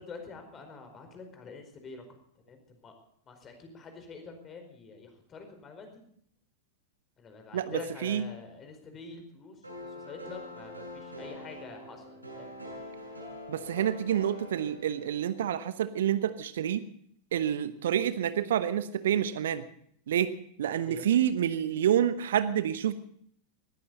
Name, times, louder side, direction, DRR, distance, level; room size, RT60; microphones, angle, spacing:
voice 1, 0.0-2.0 2.5-2.9 3.3-6.0 7.2-9.6 9.8-12.5 20.9-21.1, left 4 dB, 25° left, 6 dB, 4.7 m, -46 dB
voice 2, 7.5-8.3 13.5-16.8 17.3-19.6 20.1-20.3 20.6-22.9, right 10 dB, 60° right, 13 dB, 1.0 m, -28 dB
sound 1, 9.6-15.5, left 1 dB, 85° right, 6.7 m, -44 dB
20.0 x 15.0 x 4.1 m, 0.66 s
figure-of-eight pair, 90°, 0 cm